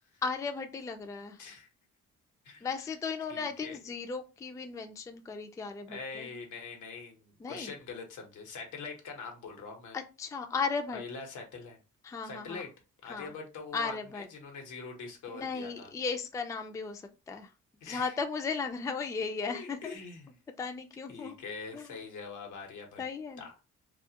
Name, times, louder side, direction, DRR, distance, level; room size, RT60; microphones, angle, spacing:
voice 1, 0.2-1.4 2.6-6.3 7.4-7.7 9.9-11.0 12.0-12.6 13.1-13.3 13.7-14.3 15.3-17.5 17.8-19.9 20.6-21.3 21.7-21.9 23.0-23.4, left 5 dB, 10° left, 6 dB, 0.3 m, -36 dB
voice 2, 1.4-1.7 2.4-2.9 3.3-3.8 5.9-10.0 10.9-11.8 12.2-12.7 13.0-15.9 17.8-18.2 19.4-20.3 21.1-23.0 23.4-23.5, left 4 dB, 80° left, 2 dB, 1.0 m, -43 dB
2.4 x 2.3 x 2.8 m, 0.29 s
cardioid pair, 90°, 30 cm